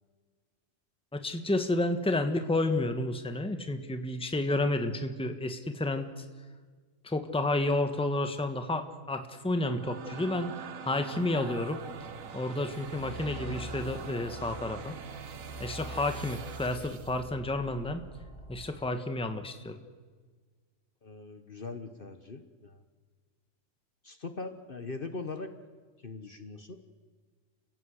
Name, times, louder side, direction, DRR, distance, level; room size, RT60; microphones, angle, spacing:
voice 1, 1.1-6.2 7.0-10.5 10.8-11.8 12.3-14.9 15.6-18.0 18.5-19.8, left 2 dB, 5° left, 7 dB, 1.3 m, -31 dB
sound 1, 9.5-17.2, right 7 dB, 75° right, 1.6 m, -43 dB
sound 2, 12.8-18.7, equal, 25° left, 3.8 m, -46 dB
voice 2, 21.0-22.8 24.0-25.5 26.0-26.8, left 3 dB, 40° left, 9 dB, 1.3 m, -41 dB
30.0 x 16.5 x 8.1 m, 1.5 s
omnidirectional pair, 1.4 m